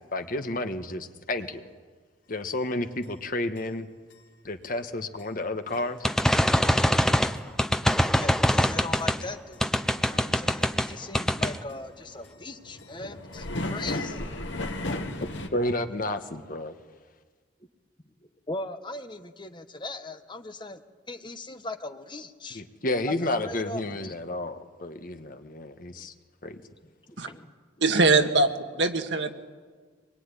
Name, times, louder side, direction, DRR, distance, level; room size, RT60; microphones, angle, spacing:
voice 1, 0.1-1.6 2.3-3.9 4.4-6.0 15.2-16.7 22.5-26.1 26.4-26.6, left 1 dB, 45° left, 8 dB, 1.5 m, -31 dB
sound 1, 2.5-2.6 3.0-3.1 3.6-3.7 4.1-4.2 4.6-4.7 5.2-5.3 5.7-5.8 6.3-6.4 6.8-6.9 7.4-7.5 7.9-8.0 8.5-8.6 9.0-9.1 9.5-9.6 10.1-10.3 10.6-10.7 11.0-15.5, left 1 dB, 80° left, 2.1 m, -35 dB
sound 2, 6.0-9.2 9.6-10.9 11.1-11.6, equal, 5° left, 0.7 m, -23 dB
voice 2, 7.8-9.7 10.0-14.2 18.2-22.6 23.0-23.2 23.4-24.1 25.9-26.1 27.1-27.5 27.8-27.9, left 2 dB, 25° left, 8 dB, 1.2 m, -39 dB
voice 3, 27.8-29.3, right 3 dB, 70° right, 6 dB, 1.8 m, -22 dB
24.5 x 22.0 x 9.9 m, 1.5 s
head